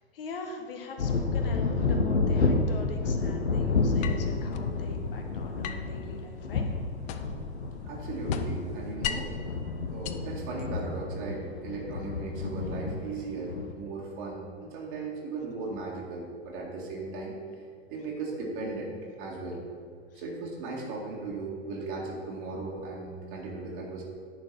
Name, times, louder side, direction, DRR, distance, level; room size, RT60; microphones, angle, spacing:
voice 1, 0.0-6.7 7.1-7.2 20.1-20.2, left 3 dB, 60° left, 4 dB, 1.3 m, -42 dB
sound 1, 1.0-13.7, left 3 dB, 75° left, 1.0 m, -30 dB
sound 2, 4.0-4.7 5.6-7.5 7.8-9.4 9.9-11.0, left 9 dB, 25° left, 0.4 m, -38 dB
voice 2, 7.8-9.3 9.9-17.3 17.9-18.9 19.2-19.6 20.1-24.0, right 3 dB, 50° right, -3 dB, 2.0 m, -37 dB
9.8 x 4.4 x 5.9 m, 2.2 s
figure-of-eight pair, 95°, 32 cm